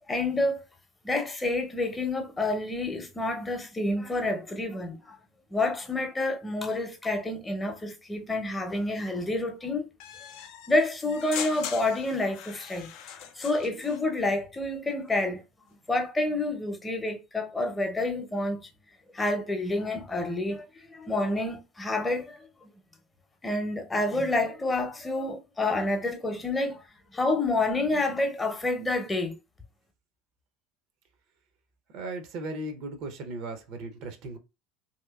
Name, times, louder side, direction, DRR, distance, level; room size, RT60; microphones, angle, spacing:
voice 1, 0.1-0.6 1.0-5.2 5.5-9.9 10.7-12.9 13.2-15.4 15.9-18.6 19.1-22.7 23.4-26.8 27.1-29.4, left 2 dB, 15° left, 0.8 m, -28 dB
sound 1, 10.0-14.0, left 9 dB, 60° left, 0.5 m, -40 dB
voice 2, 31.9-34.4, right 2 dB, 55° right, 0.7 m, -37 dB
3.0 x 2.8 x 2.3 m
figure-of-eight pair, 70°, 0 cm